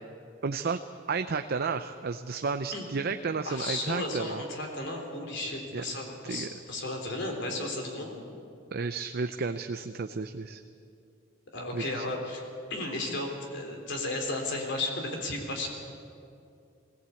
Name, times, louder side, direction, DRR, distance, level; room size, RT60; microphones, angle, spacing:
voice 1, 0.4-0.8 1.1-4.4 5.7-5.8 6.3-6.5 8.7-10.6 11.7-12.0, right 4 dB, 50° right, 7 dB, 0.6 m, -32 dB
voice 2, 3.4-8.2 11.5-15.7, left 2 dB, 65° left, 2 dB, 3.7 m, -34 dB
20.5 x 17.0 x 8.4 m, 2.5 s
head